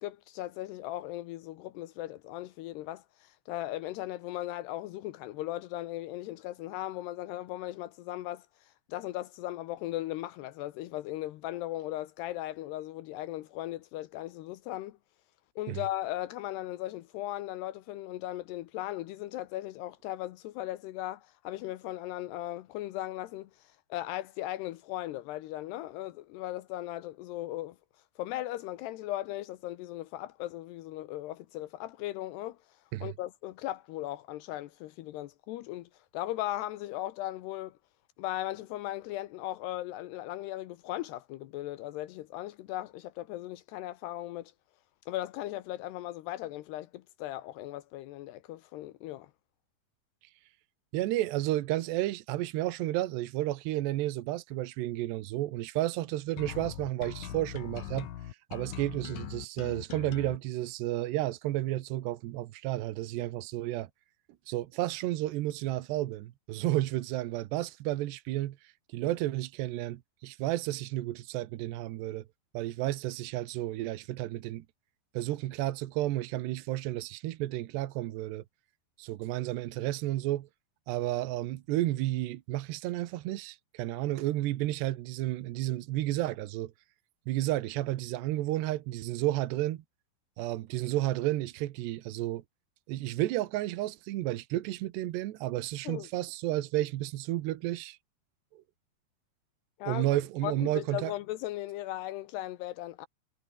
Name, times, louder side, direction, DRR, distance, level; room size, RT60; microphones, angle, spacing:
voice 1, 0.0-8.5 8.9-15.0 15.6-23.5 23.9-27.8 28.2-32.6 33.0-37.8 38.2-44.5 45.1-49.3 95.8-96.1 99.8-100.1 100.4-103.1, left 15 dB, 80° left, 3.0 m, -37 dB
voice 2, 50.9-63.9 64.5-72.2 72.5-74.6 75.1-78.4 79.0-80.5 80.9-86.7 87.3-89.8 90.4-92.4 92.9-98.0 98.5-98.6 99.9-101.1, right 15 dB, 80° right, 3.3 m, -32 dB
sound 1, 56.4-60.4, left 11 dB, 60° left, 2.4 m, -41 dB
omnidirectional pair, 4.8 m